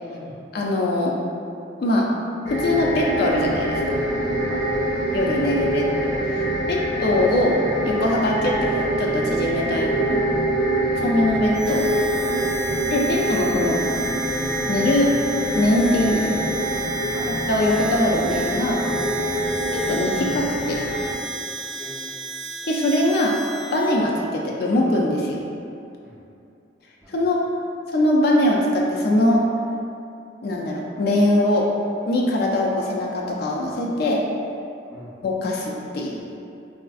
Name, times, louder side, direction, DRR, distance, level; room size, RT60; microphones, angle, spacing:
voice 1, 0.0-0.4 4.5-4.7 6.2-7.1 17.1-17.3 21.8-22.1 26.0-26.2 27.0-27.4 34.9-35.2, equal, 10° right, -9 dB, 0.5 m, -43 dB
voice 2, 0.5-1.1 1.8-2.1 2.5-3.8 5.1-5.9 6.7-7.6 7.8-10.2 10.9-11.8 12.9-13.8 14.7-15.1 15.5-16.5 17.5-18.8 19.7-20.8 22.6-23.4 23.7-25.4 27.1-27.4 27.9-29.4 30.4-31.7 32.1-34.2 35.2-36.2, left 1 dB, 55° left, -2 dB, 0.3 m, -22 dB
sound 1, 2.4-21.1, right 1 dB, 80° left, 0.8 m, -25 dB
Harmonica, 11.5-23.9, right 3 dB, 75° right, 0.5 m, -33 dB
4.0 x 2.5 x 2.3 m, 2.6 s
head